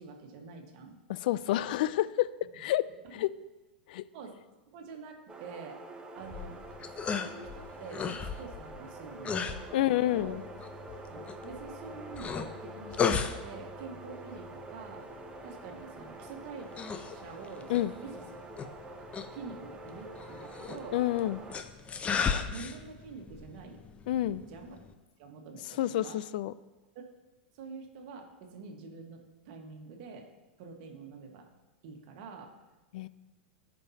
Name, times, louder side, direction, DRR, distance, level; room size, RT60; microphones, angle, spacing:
voice 1, 0.0-1.0 4.1-4.4 4.7-5.8 6.1-6.6 7.1-9.4 9.7-9.8 10.1-10.4 11.1-15.1 15.4-16.7 17.1-18.2 19.3-21.0 22.2-23.8 24.5-24.8 25.2-26.2 27.5-30.3 30.6-31.5 31.8-32.5, right 4 dB, 55° right, 3 dB, 1.5 m, -46 dB
voice 2, 1.1-2.3 2.5-2.8 3.1-3.3 3.9-4.0 9.7-10.4 17.7-17.9 20.9-21.4 24.1-24.4 25.7-26.5 32.9-33.1, left 14 dB, 65° left, 17 dB, 0.3 m, -29 dB
sound 1, 5.3-21.6, right 2 dB, 15° right, 0.8 m, -46 dB
sound 2, 6.2-24.9, left 6 dB, 25° left, 0.6 m, -37 dB
14.5 x 5.3 x 2.8 m, 1.1 s
hypercardioid pair, 105°, 5 cm